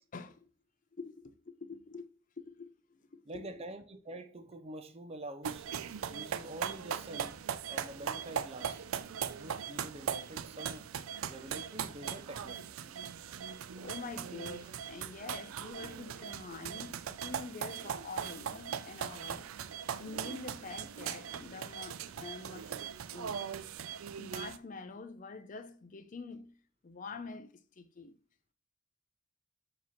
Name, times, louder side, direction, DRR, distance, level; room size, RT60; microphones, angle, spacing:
voice 1, 0.1-0.5 0.9-2.1 2.4-3.6 13.8-19.5 20.0-22.8 23.1-23.4 24.2-26.5 26.8-27.5 27.8-28.1, left 4 dB, 40° left, 0.5 m, -46 dB
voice 2, 3.3-5.7 6.1-8.8 9.2-10.9 11.2-12.6, right 1 dB, 30° right, 0.6 m, -46 dB
sound 1, 5.4-24.6, right 8 dB, 90° right, 0.4 m, -40 dB
7.6 x 3.0 x 5.7 m
head